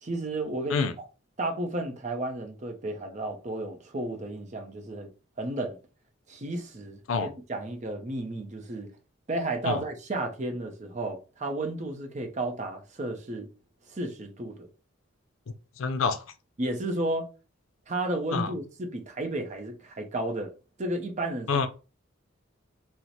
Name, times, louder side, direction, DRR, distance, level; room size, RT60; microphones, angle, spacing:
voice 1, 0.0-1.1 1.4-5.1 5.4-5.8 6.3-8.9 9.3-13.5 13.9-14.7 16.6-17.3 17.9-20.5 20.8-21.6, right 2 dB, 35° right, 0.6 m, -33 dB
voice 2, 15.8-16.2 18.3-18.5 21.5-21.7, left 5 dB, 70° left, 0.4 m, -26 dB
3.0 x 2.1 x 3.9 m
head